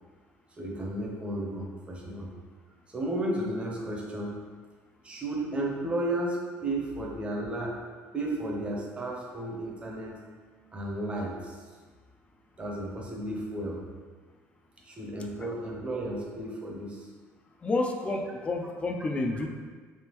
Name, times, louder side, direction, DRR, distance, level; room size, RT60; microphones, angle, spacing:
voice 1, 0.6-2.3 2.9-4.4 5.0-7.8 8.1-10.2 10.7-11.6 12.6-13.8 14.8-17.1, right 1 dB, 20° right, -2 dB, 0.7 m, -33 dB
voice 2, 17.6-19.5, left 2 dB, 20° left, 3 dB, 0.4 m, -30 dB
3.5 x 3.4 x 3.0 m, 1.5 s
cardioid pair, 130°, 6 cm